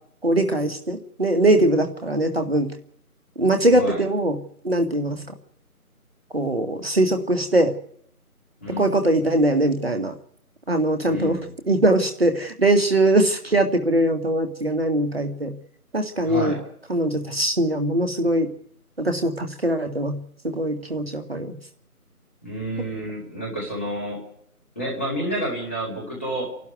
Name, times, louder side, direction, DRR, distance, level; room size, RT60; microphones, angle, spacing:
voice 1, 0.2-2.7 3.4-4.4 4.6-5.3 6.3-7.7 8.8-10.1 10.7-11.4 11.7-15.5 15.9-16.6 16.9-18.5 19.0-20.2 20.4-21.6, right 1 dB, 40° right, 6 dB, 2.1 m, -21 dB
voice 2, 8.6-8.9 11.1-11.5 16.2-16.6 22.4-24.2 24.8-26.7, right 1 dB, 10° left, -3 dB, 2.5 m, -29 dB
28.0 x 12.0 x 9.3 m, 0.66 s
figure-of-eight pair, 165°, 45 cm